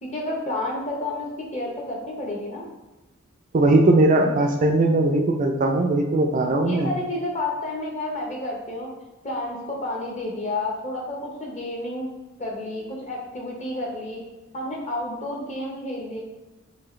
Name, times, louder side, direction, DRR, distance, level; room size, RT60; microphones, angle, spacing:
voice 1, 0.0-2.6 6.6-8.9 9.2-12.1 12.4-14.2 14.5-16.2, left 2 dB, 35° left, -1 dB, 0.9 m, -30 dB
voice 2, 3.5-6.9, right 2 dB, 40° right, 2 dB, 0.4 m, -19 dB
4.6 x 3.3 x 3.1 m, 1.1 s
head